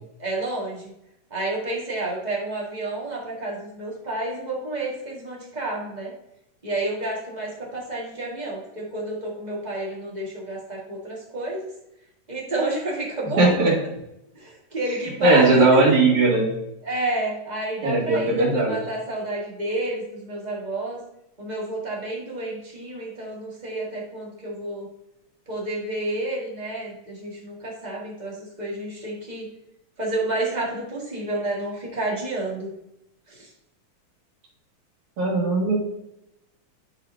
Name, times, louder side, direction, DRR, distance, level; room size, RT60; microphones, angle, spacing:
voice 1, 0.2-0.9 1.3-6.1 6.6-11.6 12.3-13.5 14.3-16.1 16.8-21.0 21.4-24.9 25.5-29.5 30.0-32.7 33.3-33.5, right 2 dB, 25° right, -4 dB, 1.0 m, -30 dB
voice 2, 13.4-13.7 15.2-16.5 17.8-18.8 35.2-35.8, right 2 dB, 65° right, -4 dB, 3.1 m, -18 dB
11.5 x 4.1 x 2.7 m, 0.85 s
omnidirectional pair, 3.6 m